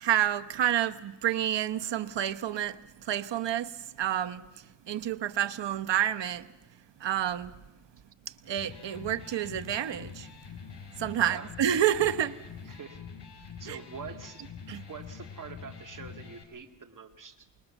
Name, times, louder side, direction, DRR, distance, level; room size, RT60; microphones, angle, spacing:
voice 1, 0.0-2.8 3.1-3.7 4.0-4.4 4.9-6.4 7.0-7.5 8.5-10.3 11.0-12.3 13.7-13.8 14.7-14.8, right 11 dB, 70° right, 1.1 m, -29 dB
Electric guitar, 8.4-16.4, left 6 dB, 65° left, 5.3 m, -45 dB
voice 2, 11.2-11.5 12.7-13.0 13.4-14.4 14.9-17.5, right 6 dB, 45° right, 2.4 m, -45 dB
25.0 x 21.5 x 7.2 m
cardioid pair, 105°, 44 cm